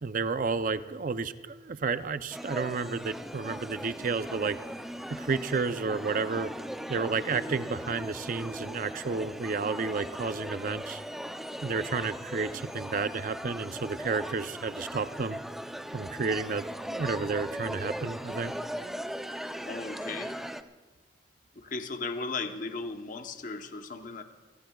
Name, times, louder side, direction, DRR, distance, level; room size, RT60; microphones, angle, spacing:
voice 1, 0.0-4.6 5.2-6.5 6.9-11.0 11.6-15.4 15.9-18.5, right 4 dB, 50° right, 12 dB, 0.5 m, -31 dB
sound 1, 2.3-20.6, equal, ahead, 0.5 m, -39 dB
voice 2, 19.7-20.3 21.6-24.2, left 3 dB, 50° left, 6 dB, 0.9 m, -36 dB
28.0 x 17.0 x 2.3 m, 1.3 s
head